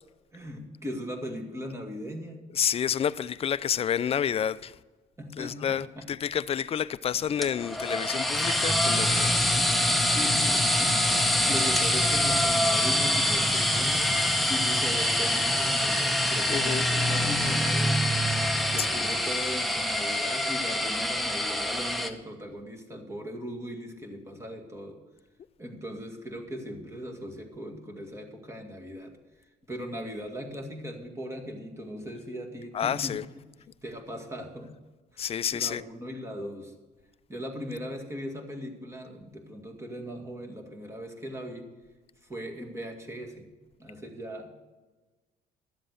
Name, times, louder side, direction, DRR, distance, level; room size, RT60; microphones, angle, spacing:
voice 1, 0.3-2.5 5.2-6.1 9.3-14.1 14.4-18.0 18.7-25.0 25.6-29.1 29.7-33.2 33.8-34.8 35.1-36.7 37.3-41.7 42.2-43.5 43.8-44.5, equal, 15° right, 2.1 m, -39 dB
voice 2, 2.5-4.8 5.4-9.6 13.9-14.1 16.5-16.9 18.8-19.0 32.7-33.2 35.2-35.8, left 8 dB, 35° left, 0.4 m, -29 dB
sound 1, 7.4-22.1, left 1 dB, ahead, 0.9 m, -25 dB
12.5 x 7.6 x 6.6 m
cardioid pair, 110°, 17 cm